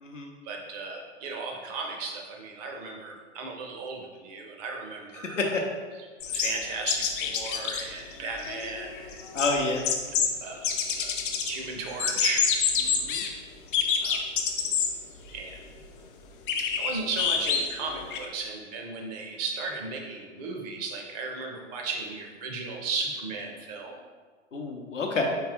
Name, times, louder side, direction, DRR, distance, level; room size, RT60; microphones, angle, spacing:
voice 1, 0.4-5.6 6.0-9.2 10.1-10.7 11.0-11.2 11.5-12.5 14.0-14.2 15.3-15.7 16.6-24.0, right 4 dB, 35° right, 1 dB, 0.7 m, -36 dB
sound 1, 6.2-7.8 8.1-8.2 8.4-10.3 10.6-11.5 11.9-13.3 13.7-14.9 15.3-15.4 16.5-18.3, left 6 dB, 45° left, 0.5 m, -27 dB
voice 2, 9.3-9.8 12.9-13.2 24.5-25.2, left 3 dB, 85° left, 1 dB, 0.8 m, -29 dB
4.6 x 3.4 x 3.0 m, 1.5 s
figure-of-eight pair, 105°, 36 cm